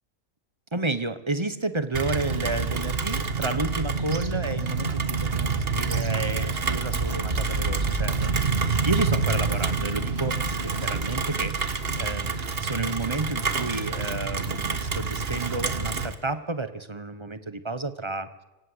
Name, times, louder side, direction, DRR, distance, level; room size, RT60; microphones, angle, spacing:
voice 1, 0.7-18.3, right 3 dB, 20° right, 12 dB, 1.2 m, -31 dB
Rain, 1.9-16.1, right 4 dB, 45° right, 1.6 m, -27 dB
26.0 x 17.0 x 8.1 m, 1.0 s
omnidirectional pair, 1.4 m